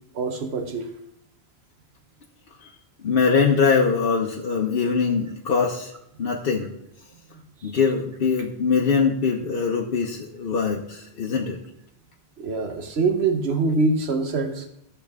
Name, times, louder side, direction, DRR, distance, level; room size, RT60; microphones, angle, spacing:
voice 1, 0.1-0.9 12.4-14.6, right 3 dB, 85° right, 6 dB, 1.2 m, -24 dB
voice 2, 3.0-5.9 6.2-6.7 7.6-11.6, left 5 dB, 65° left, 0 dB, 1.0 m, -22 dB
13.5 x 7.2 x 3.5 m, 0.76 s
omnidirectional pair, 1.1 m